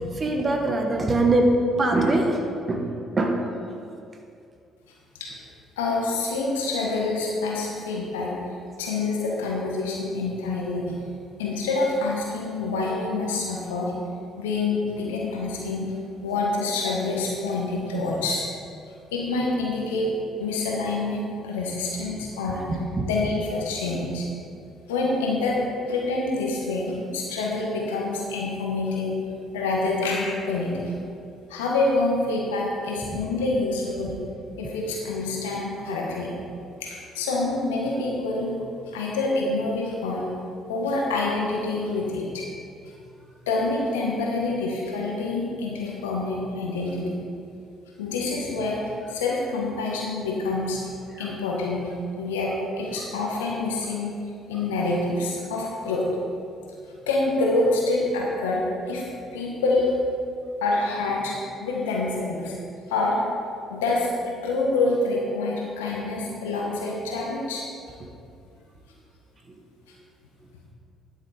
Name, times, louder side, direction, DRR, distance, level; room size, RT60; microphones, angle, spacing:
voice 1, 0.0-1.5 1.8-2.4 2.7-2.9 3.2-3.4 15.0-15.2 23.0-23.1 34.1-34.2, right 2 dB, 35° right, 2 dB, 1.6 m, -22 dB
voice 2, 5.8-8.3 8.8-10.9 11.4-13.9 14.4-15.9 16.2-18.4 19.1-20.1 20.4-22.7 23.0-24.3 24.9-25.6 25.9-29.2 29.5-30.9 31.5-34.2 34.6-36.3 36.8-38.5 38.9-40.3 40.7-42.4 42.8-42.9 43.5-47.2 48.0-48.8 49.1-50.8 51.2-51.9 52.2-54.1 54.5-56.1 57.1-59.0 59.3-59.9 60.6-62.6 62.9-63.2 63.7-67.6, left 3 dB, 80° left, -2 dB, 1.5 m, -26 dB
11.5 x 6.6 x 5.0 m, 2.5 s
figure-of-eight pair, 50°, 0 cm